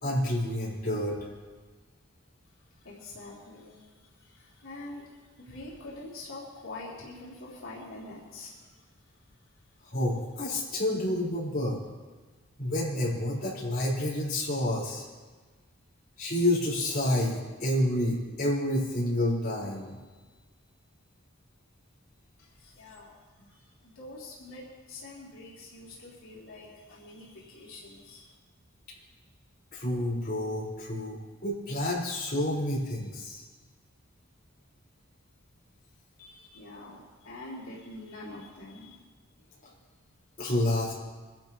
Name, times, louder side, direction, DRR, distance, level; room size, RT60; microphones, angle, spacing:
voice 1, 0.0-1.2 9.8-11.8 12.6-15.0 16.2-20.0 29.7-33.4 40.4-40.9, left 1 dB, 45° left, -6 dB, 4.6 m, -29 dB
voice 2, 2.7-9.6 22.4-28.4 36.2-39.0, left 2 dB, 85° left, -6 dB, 3.3 m, -46 dB
23.5 x 12.0 x 3.0 m, 1.4 s
head